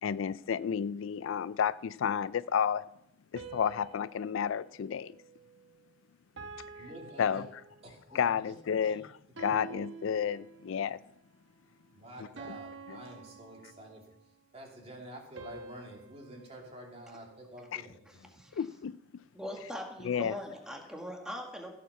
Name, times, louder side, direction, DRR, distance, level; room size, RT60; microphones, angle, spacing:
voice 1, 0.0-2.9 3.3-5.1 7.2-7.5 8.1-9.1 9.4-11.0 12.5-12.6 12.9-13.0 17.7-17.8 18.5-19.0 20.0-20.3, left 7 dB, 75° left, 0.4 m, -31 dB
sound 1, 3.4-5.9 6.4-8.1 9.4-10.9 12.4-14.2 15.4-17.7, right 4 dB, 65° right, 1.3 m, -49 dB
voice 2, 6.8-7.5 7.8-8.5 8.8-9.0 11.9-14.1 14.5-18.2, right 1 dB, 30° right, 2.8 m, -49 dB
voice 3, 18.3-18.6 19.3-21.7, equal, 5° right, 1.8 m, -41 dB
15.5 x 7.5 x 5.7 m
head